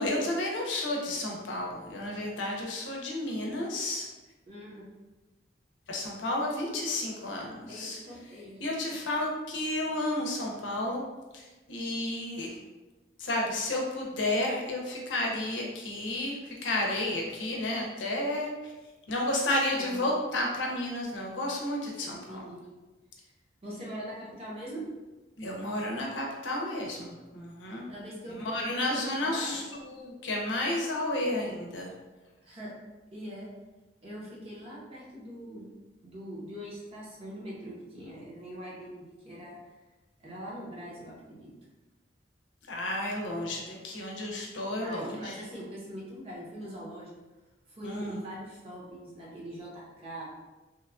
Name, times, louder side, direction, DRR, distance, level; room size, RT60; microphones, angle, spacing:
voice 1, 0.0-4.1 5.9-8.0 8.6-11.0 11.3-12.6 13.2-18.7 19.1-22.4 25.4-27.9 28.3-31.9 42.7-45.3 47.8-48.2, left 1 dB, 85° left, -1 dB, 0.6 m, -32 dB
voice 2, 4.5-4.8 7.7-8.6 19.8-20.1 22.0-22.7 23.6-24.8 27.9-28.8 29.2-29.9 32.4-32.7 33.1-33.5 34.0-35.7 36.0-39.6 40.2-41.5 44.8-47.1 47.7-50.3, equal, 30° right, -6 dB, 0.8 m, -42 dB
2.9 x 2.3 x 2.4 m, 1.2 s
head